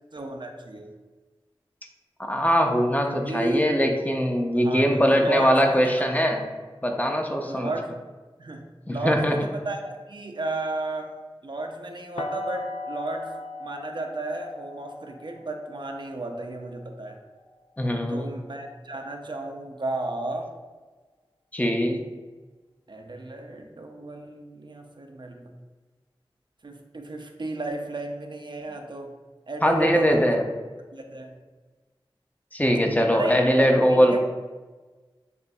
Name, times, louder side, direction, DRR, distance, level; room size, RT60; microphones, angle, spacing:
voice 1, 0.1-0.9 3.1-4.0 4.5-6.1 7.4-8.0 8.4-13.3 13.6-17.2 18.1-20.5 22.9-25.5 26.6-29.1 29.5-30.4 30.9-31.4 33.1-34.2, right 2 dB, 55° right, 3 dB, 0.5 m, -33 dB
voice 2, 2.2-6.4 6.8-7.7 8.9-9.4 17.8-18.3 21.5-22.0 29.6-30.4 32.5-34.2, equal, 15° left, 2 dB, 0.5 m, -21 dB
sound 1, 12.2-18.0, left 2 dB, 85° left, 0.4 m, -39 dB
6.6 x 2.5 x 2.3 m, 1.3 s
wide cardioid pair, 45°, 9 cm